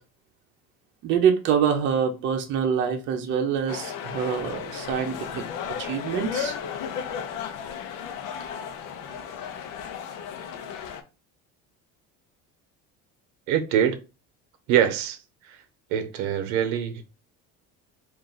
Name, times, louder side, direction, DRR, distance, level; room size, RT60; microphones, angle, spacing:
voice 1, 1.0-5.4 5.8-6.5, right 7 dB, 40° right, 0.7 m, -25 dB
sound 1, 3.7-11.0, left 7 dB, 80° left, 0.8 m, -34 dB
voice 2, 13.5-14.0 14.7-15.2 15.4-15.6 15.9-17.1, right 9 dB, 75° right, 0.7 m, -24 dB
3.7 x 2.5 x 3.9 m
cardioid pair, 180°, 30 cm